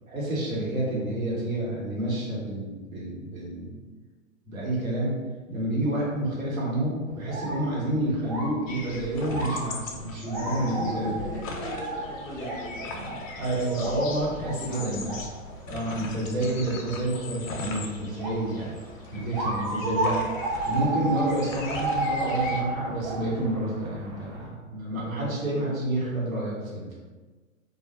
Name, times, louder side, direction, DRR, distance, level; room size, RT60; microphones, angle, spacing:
voice 1, 0.1-3.8 4.4-5.2 5.5-11.1 12.8-12.9 13.4-15.0 15.7-18.7 19.1-20.2 20.7-27.0, right 1 dB, 75° right, -6 dB, 1.2 m, -29 dB
sound 1, 7.1-24.5, right 2 dB, 30° right, 0.6 m, -34 dB
sound 2, 8.7-22.6, left 3 dB, 70° left, 0.6 m, -39 dB
voice 2, 10.3-13.2 14.7-15.1 15.5-15.6, left 1 dB, 15° left, -11 dB, 0.4 m, -38 dB
2.3 x 2.1 x 2.8 m, 1.3 s
figure-of-eight pair, 120°, 41 cm